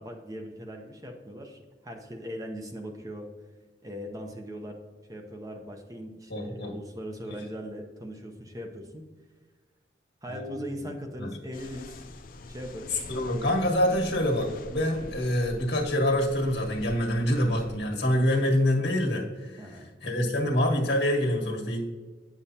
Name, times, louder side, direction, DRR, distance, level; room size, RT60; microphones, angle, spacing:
voice 1, 0.0-3.3 3.8-4.8 5.1-9.0 10.2-12.1 12.5-12.9 19.6-19.9, equal, 20° right, 3 dB, 0.6 m, -40 dB
voice 2, 6.3-6.8 7.3-7.4 10.3-10.7 11.2-11.3 12.9-21.8, left 1 dB, 75° left, 0 dB, 1.6 m, -26 dB
sound 1, 11.5-17.8, left 2 dB, 50° left, 0.4 m, -45 dB
9.0 x 7.1 x 2.8 m, 1.4 s
head